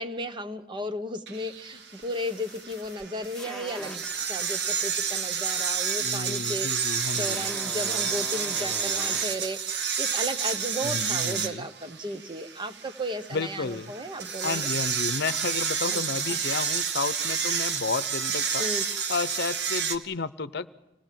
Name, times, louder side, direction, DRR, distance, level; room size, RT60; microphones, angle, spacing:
voice 1, 0.0-4.0 4.3-14.7 15.9-16.0 16.3-16.4 18.5-18.9, equal, 25° right, 10 dB, 1.2 m, -35 dB
sound 1, 1.3-20.0, right 6 dB, 70° right, 1.5 m, -30 dB
sound 2, 2.0-4.2 4.6-9.3, left 1 dB, 5° left, 1.9 m, -43 dB
voice 2, 6.0-7.5 10.8-11.7 13.3-13.9 14.4-20.7, left 4 dB, 65° left, 14 dB, 0.8 m, -32 dB
26.0 x 18.0 x 7.6 m, 0.92 s
head